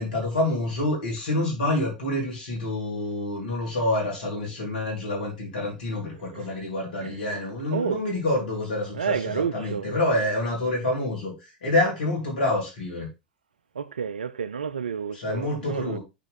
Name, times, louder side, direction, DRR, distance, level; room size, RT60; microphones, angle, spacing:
voice 1, 0.0-13.1 15.1-16.0, left 1 dB, 70° left, 3.9 m, -27 dB
voice 2, 7.7-8.0 8.9-9.9 13.8-16.0, right 7 dB, 75° right, 0.5 m, -30 dB
9.1 x 4.6 x 3.6 m
figure-of-eight pair, 85°, 5 cm